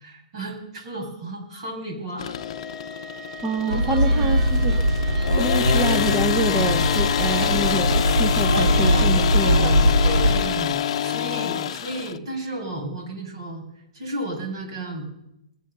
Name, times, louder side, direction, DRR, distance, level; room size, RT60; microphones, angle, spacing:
voice 1, 0.0-2.3 3.6-4.3 10.2-10.7 11.0-15.1, right 1 dB, 55° right, 1 dB, 7.7 m, -33 dB
sound 1, 2.2-12.2, left 10 dB, 55° left, 0.8 m, -26 dB
sound 2, 2.3-7.5, right 1 dB, 15° left, 0.9 m, -39 dB
voice 2, 3.4-4.8 5.3-9.9, right 2 dB, 15° right, 5 dB, 1.0 m, -27 dB
sound 3, 3.7-10.4, equal, 70° right, 3.9 m, -21 dB
22.0 x 8.0 x 6.9 m, 0.86 s
hypercardioid pair, 145°, 4 cm